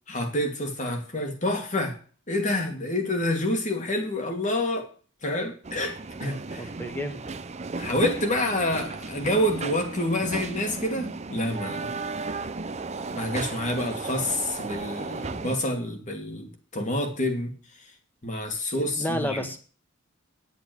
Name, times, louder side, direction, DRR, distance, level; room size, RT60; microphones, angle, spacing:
voice 1, 0.1-2.0 2.3-4.9 5.2-6.7 7.8-11.9 13.1-17.5 18.2-19.4, left 1 dB, 35° left, 4 dB, 2.6 m, -28 dB
sound 1, 5.6-15.6, right 3 dB, 35° right, 0.7 m, -35 dB
voice 2, 6.6-7.2 18.7-19.6, left 1 dB, 10° left, 7 dB, 1.5 m, -31 dB
10.5 x 8.4 x 6.2 m, 0.41 s
head